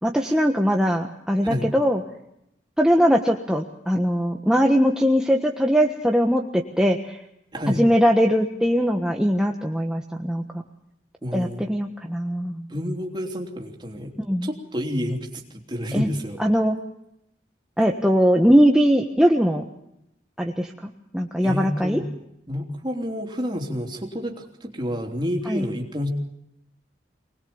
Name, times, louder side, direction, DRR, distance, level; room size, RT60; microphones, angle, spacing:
voice 1, 0.0-2.0 2.8-7.2 7.7-10.6 11.3-12.7 14.3-14.5 15.9-16.1 16.4-16.7 17.8-19.6 20.4-22.0 25.4-25.7, equal, 5° right, 1 dB, 1.3 m, -21 dB
voice 2, 11.2-11.7 12.7-14.1 14.4-16.4 21.4-22.1 22.5-26.1, equal, 25° right, 2 dB, 3.3 m, -29 dB
24.5 x 20.5 x 7.1 m, 0.80 s
head